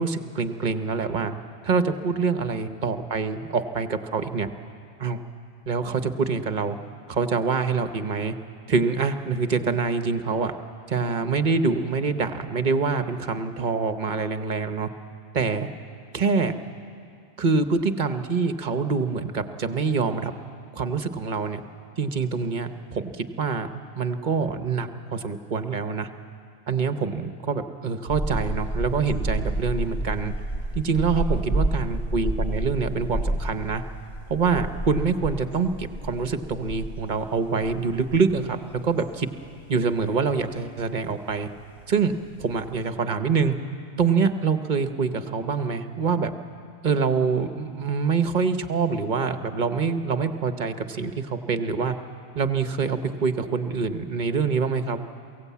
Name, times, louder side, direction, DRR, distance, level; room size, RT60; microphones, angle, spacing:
voice 1, 0.0-1.3 1.6-4.5 5.0-5.2 5.7-6.8 7.1-8.3 8.7-10.5 10.9-14.9 15.3-15.7 16.1-16.5 17.4-20.3 20.7-21.6 22.0-23.7 24.0-26.1 26.7-30.3 30.7-33.8 34.3-38.6 38.8-39.3 39.7-41.5 41.9-42.1 42.4-43.6 44.0-46.3 46.8-52.0 52.3-55.0, right 5 dB, 45° right, 9 dB, 1.0 m, -25 dB
sound 1, 28.1-42.9, right 1 dB, 45° left, 2.3 m, -31 dB
22.5 x 16.5 x 8.4 m, 2.3 s
omnidirectional pair, 1.2 m